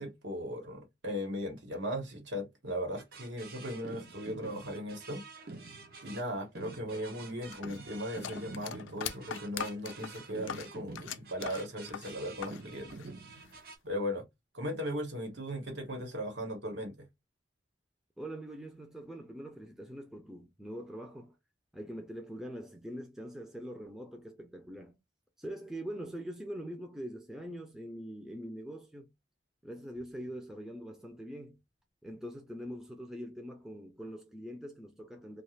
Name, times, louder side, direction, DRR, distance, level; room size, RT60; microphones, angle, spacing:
voice 1, 0.0-5.2 6.0-13.1 13.8-14.3 14.5-17.1, equal, 75° right, 1.2 m, -37 dB
sound 1, 3.0-13.8, right 3 dB, 50° right, 0.6 m, -48 dB
sound 2, 7.5-12.6 12.9-13.7, left 8 dB, 90° left, 0.4 m, -41 dB
voice 2, 18.2-21.4 21.7-24.9 25.4-29.1 29.6-31.6 32.0-35.4, equal, 5° right, 0.5 m, -43 dB
2.4 x 2.4 x 3.1 m
head